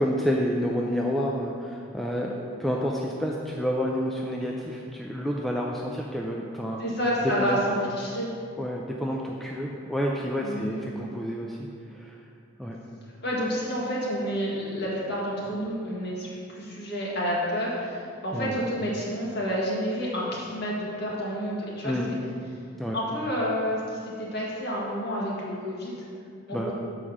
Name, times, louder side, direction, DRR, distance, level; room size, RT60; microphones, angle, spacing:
voice 1, 0.0-6.8 7.2-7.6 8.6-12.2 12.6-12.8 18.3-18.6 21.8-22.1 22.8-23.0 26.5-26.7, equal, ahead, -2 dB, 0.4 m, -29 dB
voice 2, 6.8-8.3 10.4-10.8 13.2-22.2 22.9-26.0 26.5-26.7, equal, 50° left, -5 dB, 1.8 m, -29 dB
7.2 x 4.9 x 6.0 m, 2.3 s
head